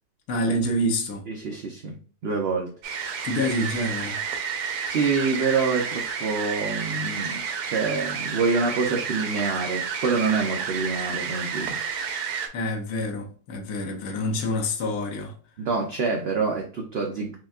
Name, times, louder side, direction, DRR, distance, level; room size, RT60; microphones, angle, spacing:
voice 1, 0.3-1.3 3.2-4.2 12.5-15.3, left 1 dB, 75° left, 1.3 m, -27 dB
voice 2, 1.3-2.0 2.2-2.7 4.8-11.8 15.6-17.4, right 4 dB, 60° right, 0.7 m, -26 dB
sound 1, 2.8-12.5, right 6 dB, 90° right, 1.3 m, -31 dB
6.2 x 2.2 x 2.3 m
omnidirectional pair, 1.6 m